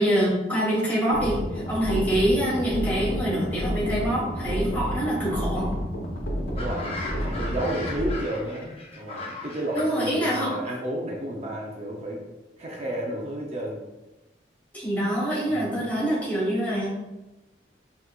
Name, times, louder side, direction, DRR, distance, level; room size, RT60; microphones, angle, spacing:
voice 1, 0.0-5.7 9.7-10.5 14.7-16.9, equal, 10° left, -7 dB, 1.5 m, -25 dB
sound 1, 1.1-8.1, equal, 85° left, 0.9 m, -30 dB
voice 2, 6.5-8.7 9.0-12.2 12.6-13.8 15.5-15.8, right 1 dB, 35° right, -2 dB, 0.6 m, -31 dB
sound 2, 6.6-9.9, left 2 dB, 35° left, 0.7 m, -37 dB
5.4 x 3.1 x 2.4 m, 1.0 s
head